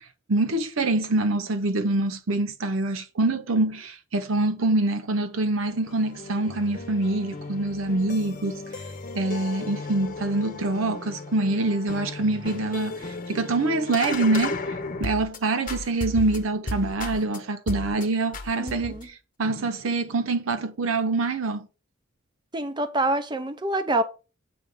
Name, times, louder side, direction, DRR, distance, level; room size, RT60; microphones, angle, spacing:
voice 1, 0.3-8.8 9.1-21.6, right 2 dB, 85° right, 0.7 m, -25 dB
sound 1, 5.6-15.4 15.7-17.4 17.7-18.0 18.3-19.1, left 2 dB, 40° left, 0.9 m, -35 dB
voice 2, 18.6-19.1 22.5-24.0, right 2 dB, 20° right, 0.7 m, -26 dB
7.8 x 3.4 x 5.2 m
head